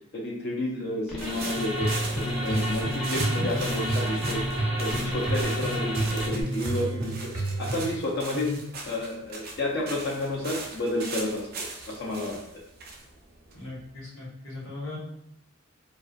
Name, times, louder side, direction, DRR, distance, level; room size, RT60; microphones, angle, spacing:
voice 1, 0.1-1.9 2.1-4.4 4.8-7.3 7.6-8.5 8.8-12.4, left 1 dB, 50° left, -3 dB, 0.4 m, -30 dB
sound 1, 1.1-6.4, equal, ahead, 0.6 m, -34 dB
sound 2, 1.2-14.0, right 3 dB, 45° right, 0.4 m, -40 dB
sound 3, 1.5-8.0, right 1 dB, 70° right, 0.7 m, -30 dB
voice 2, 3.1-3.5 8.3-8.6 13.5-15.0, left 2 dB, 85° left, -6 dB, 1.1 m, -37 dB
2.4 x 2.3 x 2.2 m, 0.75 s
head